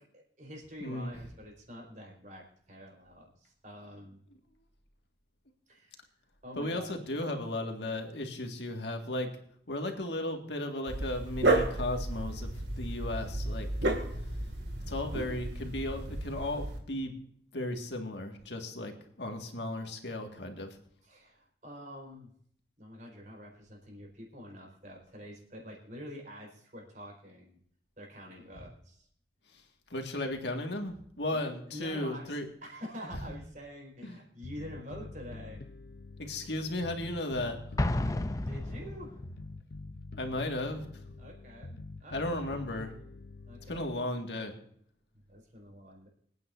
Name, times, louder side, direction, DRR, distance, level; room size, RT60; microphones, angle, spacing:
voice 1, 0.0-4.2 5.7-6.0 6.4-6.9 21.0-22.3 22.8-27.6 28.0-29.1 31.3-35.6 38.3-39.2 41.2-42.2 43.5-43.8 45.3-46.1, equal, 45° right, -1 dB, 5.0 m, -47 dB
voice 2, 0.8-1.1 6.6-9.3 9.7-12.5 12.8-13.7 14.9-17.2 17.5-18.9 19.2-20.7 29.9-32.5 34.0-34.2 36.2-37.6 40.2-40.9 42.1-42.9 43.7-44.6, left 1 dB, 80° left, 3 dB, 2.0 m, -35 dB
Dog, 10.9-16.8, right 2 dB, 75° right, 2.4 m, -32 dB
Bass guitar, 34.4-44.0, left 3 dB, 65° left, 0.8 m, -46 dB
Explosion, 37.8-39.4, left 1 dB, 20° left, 0.5 m, -31 dB
26.5 x 9.3 x 2.7 m, 0.66 s
head